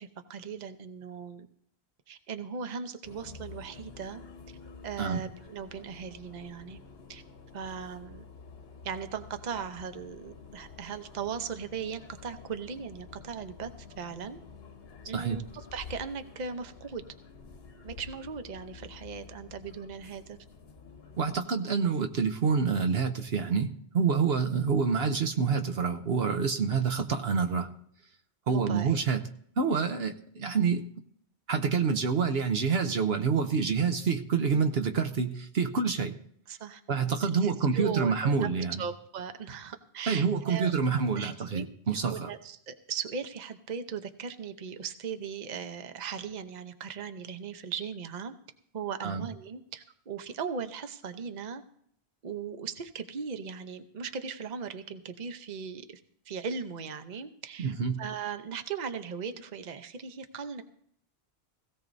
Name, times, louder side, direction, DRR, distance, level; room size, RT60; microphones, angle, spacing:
voice 1, 0.0-1.5 2.1-4.2 4.8-6.8 7.1-7.2 7.5-8.3 8.8-13.7 14.0-14.4 15.1-17.0 17.8-20.4 28.5-29.0 36.5-36.8 37.4-38.5 38.8-41.7 42.1-48.3 48.7-51.6 52.2-56.0 56.3-60.6, right 6 dB, 45° right, 9 dB, 0.9 m, -38 dB
sound 1, 3.0-21.4, left 5 dB, 65° left, 1.2 m, -49 dB
voice 2, 21.2-23.7 23.9-27.7 28.5-29.2 29.6-30.8 31.5-36.2 36.9-38.8 40.1-42.3 49.0-49.3 57.6-58.0, right 5 dB, 70° right, 7 dB, 1.0 m, -27 dB
17.0 x 16.5 x 2.6 m, 0.66 s
omnidirectional pair, 1.1 m